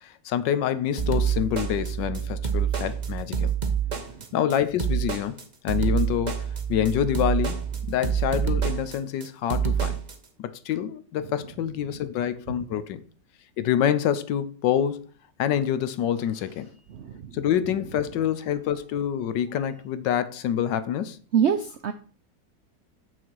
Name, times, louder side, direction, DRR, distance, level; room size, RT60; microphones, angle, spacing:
voice 1, 0.0-3.5 4.3-5.3 5.6-10.0 10.4-13.0 13.6-15.0 15.4-16.7 17.3-21.2, left 10 dB, 85° left, 1.4 m, -26 dB
sound 1, 1.0-10.2, right 7 dB, 35° right, 0.8 m, -27 dB
voice 2, 16.9-17.4 21.3-21.9, right 8 dB, 85° right, 0.6 m, -25 dB
7.5 x 6.4 x 4.6 m
omnidirectional pair, 1.9 m